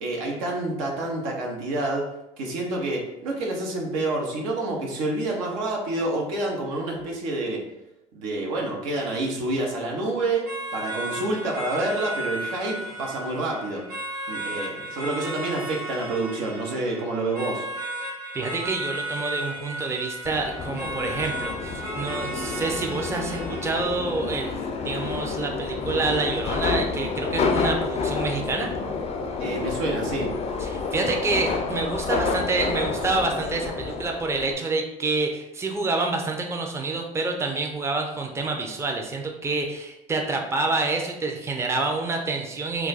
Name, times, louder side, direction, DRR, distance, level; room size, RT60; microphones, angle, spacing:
voice 1, 0.0-2.1 2.4-7.6 8.1-10.5 10.7-13.8 14.3-17.7 29.4-30.3, right 2 dB, 80° right, -1 dB, 0.7 m, -28 dB
sound 1, 10.5-24.0, right 1 dB, 60° right, 1.2 m, -34 dB
voice 2, 18.3-24.6 24.8-28.7 30.6-42.9, right 3 dB, 15° right, 2 dB, 0.5 m, -27 dB
Subway metro underground, 20.2-34.5, left 4 dB, 40° left, 0.4 m, -29 dB
2.3 x 2.2 x 3.9 m, 0.89 s
hypercardioid pair, 65°, 17 cm